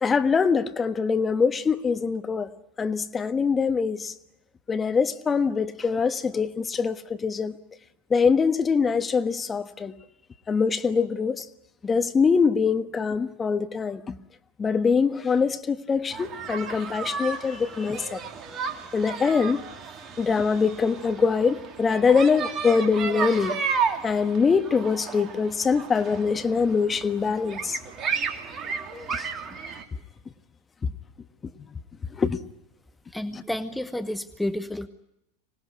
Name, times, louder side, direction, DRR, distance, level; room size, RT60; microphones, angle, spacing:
voice 1, 0.0-2.5 2.8-4.1 4.7-7.6 8.1-9.9 10.5-11.4 11.8-14.2 14.6-18.2 18.9-19.6 20.2-23.6 24.0-27.8 29.1-29.3 30.8-30.9 32.2-32.4 33.3-33.4, left 5 dB, 20° left, 1.3 m, -23 dB
sound 1, 16.1-29.8, right 6 dB, 35° right, 2.6 m, -33 dB
voice 2, 33.1-34.9, left 1 dB, 5° left, 1.1 m, -30 dB
25.5 x 19.0 x 9.6 m
hypercardioid pair, 90°, 0 cm